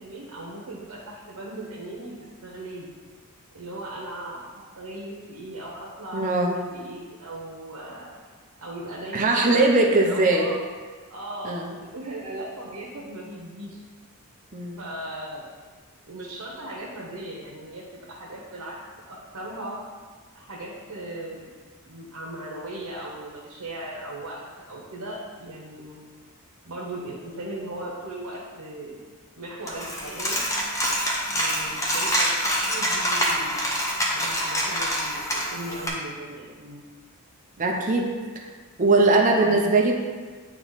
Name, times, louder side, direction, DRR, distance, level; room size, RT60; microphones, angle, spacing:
voice 1, 0.0-2.9 3.5-4.5 4.7-8.1 8.6-9.6 9.9-10.5 11.1-13.8 14.8-15.5 16.1-18.8 19.1-19.8 20.3-21.5 21.8-26.0 26.6-29.0 29.4-30.4 31.3-33.6 34.1-36.8 39.4-39.7, right 1 dB, 80° right, -5 dB, 1.1 m, -38 dB
voice 2, 6.1-6.6 9.1-10.5 11.4-11.8 14.5-14.8 37.6-38.1 38.3-38.4 38.8-39.9, right 2 dB, 35° right, 0 dB, 0.7 m, -20 dB
Coin (dropping), 29.7-35.9, equal, 15° left, 0.8 m, -26 dB
8.9 x 3.0 x 4.1 m, 1.5 s
head